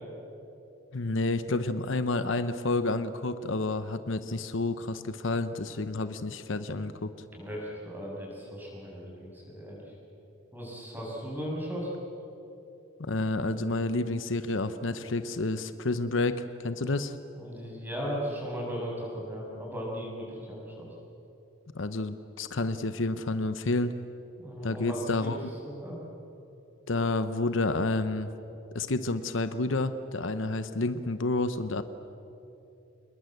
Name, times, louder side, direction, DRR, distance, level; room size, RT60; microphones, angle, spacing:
voice 1, 0.9-7.1 13.0-17.2 21.7-23.9 24.6-25.5 26.9-28.3 28.7-31.8, left 2 dB, 65° left, 11 dB, 0.9 m, -30 dB
voice 2, 7.3-9.9 10.5-11.9 17.3-20.9 24.4-25.3 25.6-26.0, equal, 10° right, -3 dB, 7.4 m, -37 dB
28.0 x 21.0 x 8.1 m, 2.8 s
head